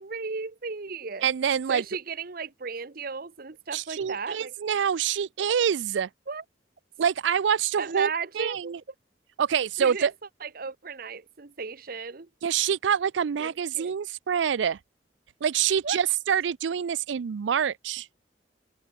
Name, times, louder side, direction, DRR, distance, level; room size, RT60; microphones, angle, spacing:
voice 1, 0.0-1.3 1.7-4.5 6.3-6.4 7.8-8.8 9.8-10.1 10.4-12.3 13.4-13.9 15.8-16.0, right 5 dB, 55° right, 0.9 m, -35 dB
voice 2, 1.2-1.8 3.7-6.1 7.0-8.8 9.4-10.1 12.4-14.8 15.4-18.1, right 8 dB, 85° right, 0.4 m, -26 dB
head